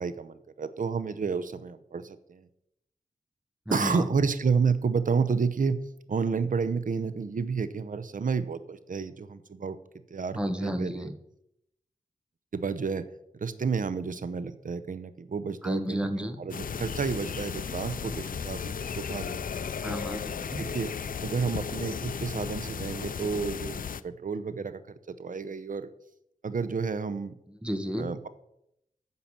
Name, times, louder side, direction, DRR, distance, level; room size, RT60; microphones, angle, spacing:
voice 1, 0.0-2.5 3.7-5.8 6.1-9.8 10.1-11.1 12.5-13.1 13.4-19.6 20.6-20.9 21.2-24.8 25.1-25.9 26.4-27.3 28.0-28.3, right 5 dB, 65° right, 13 dB, 0.8 m, -30 dB
voice 2, 3.7-4.1 10.4-11.1 15.6-16.4 19.8-20.6 27.6-28.1, equal, 5° right, 7 dB, 1.4 m, -32 dB
sound 1, 16.5-24.0, left 6 dB, 70° left, 0.5 m, -35 dB
9.6 x 5.8 x 7.3 m, 0.80 s
cardioid pair, 60°, 15 cm